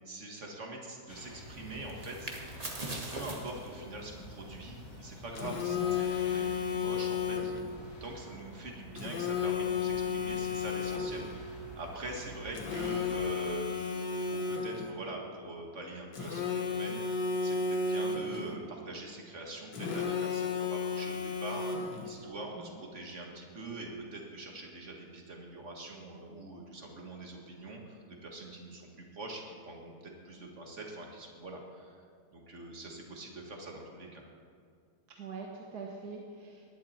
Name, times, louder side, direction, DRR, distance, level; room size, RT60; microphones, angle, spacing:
voice 1, 0.1-2.3 2.9-7.5 8.0-21.7 22.0-32.0 32.3-34.2, right 2 dB, 45° right, 0 dB, 2.2 m, -44 dB
sound 1, 1.1-13.3, equal, 60° left, 2.5 m, -50 dB
sound 2, 1.4-7.2, right 2 dB, 25° right, 1.3 m, -45 dB
Telephone, 5.4-7.7 9.0-11.3 12.6-14.9 16.1-18.5 19.7-22.1, left 5 dB, 90° left, 2.0 m, -33 dB
voice 2, 22.6-22.9 35.2-36.7, right 4 dB, 65° right, 0 dB, 1.6 m, -44 dB
19.0 x 11.5 x 4.4 m, 2.2 s
omnidirectional pair, 1.8 m